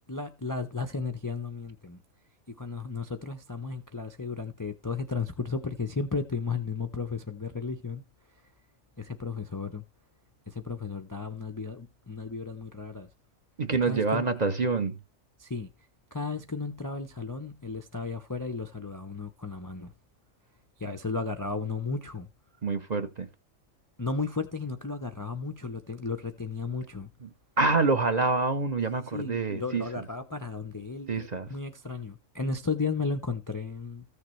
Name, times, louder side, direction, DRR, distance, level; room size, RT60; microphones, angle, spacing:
voice 1, 0.1-2.0 2.5-8.0 9.0-9.8 10.5-13.1 13.9-14.2 15.4-15.7 16.1-19.9 20.8-22.3 24.0-27.1 29.1-34.0, left 4 dB, 30° left, 0.4 m, -34 dB
voice 2, 13.6-15.0 22.6-23.3 27.2-27.3 27.6-30.0 31.1-31.5, right 3 dB, 40° right, 0.7 m, -27 dB
14.5 x 6.6 x 3.1 m
omnidirectional pair, 1.4 m